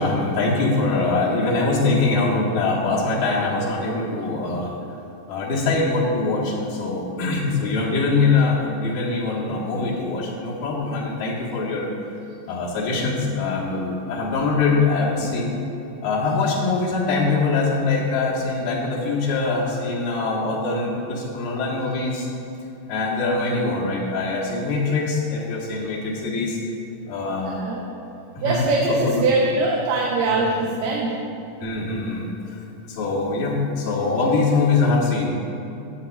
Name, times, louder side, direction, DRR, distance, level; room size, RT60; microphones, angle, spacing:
voice 1, 0.0-4.8 5.3-11.9 12.5-15.5 16.0-22.3 22.9-26.6 27.1-27.6 28.4-29.2 30.3-30.5 31.6-32.6 32.8-35.3, left 3 dB, 85° left, -5 dB, 3.0 m, -23 dB
voice 2, 27.5-27.9 28.4-31.2, right 2 dB, 80° right, -2 dB, 2.4 m, -22 dB
14.5 x 7.8 x 2.4 m, 2.9 s
omnidirectional pair, 4.0 m